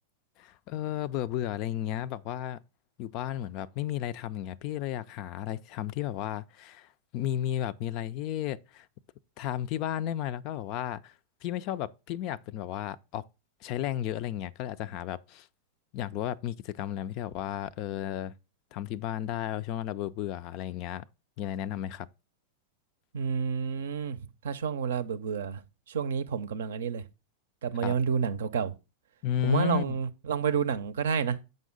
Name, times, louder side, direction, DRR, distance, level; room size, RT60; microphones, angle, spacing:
voice 1, 0.4-2.6 3.0-8.9 9.4-11.1 11.4-13.2 13.6-15.5 15.9-18.3 18.7-21.0 21.4-22.1 27.8-28.0 29.2-29.9, left 11 dB, 40° left, 0.3 m, -33 dB
voice 2, 23.1-25.6 25.9-27.0 27.6-28.7 29.4-31.4, right 6 dB, 60° right, 0.6 m, -29 dB
7.6 x 5.4 x 3.7 m
figure-of-eight pair, 90°, 0 cm